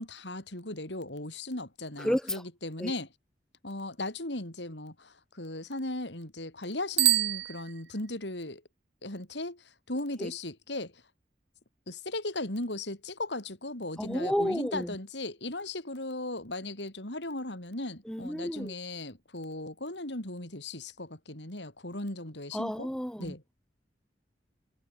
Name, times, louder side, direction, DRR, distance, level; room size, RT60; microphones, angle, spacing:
voice 1, 0.0-3.1 3.6-8.6 9.0-11.0 11.9-22.9 23.2-23.4, left 2 dB, 75° left, 5.6 m, -37 dB
voice 2, 2.0-2.4 2.8-2.9 10.2-10.3 14.0-15.0 18.0-18.7 22.5-23.5, equal, 5° left, 1.3 m, -31 dB
Bicycle bell, 6.9-8.3, right 16 dB, 75° right, 0.9 m, -27 dB
head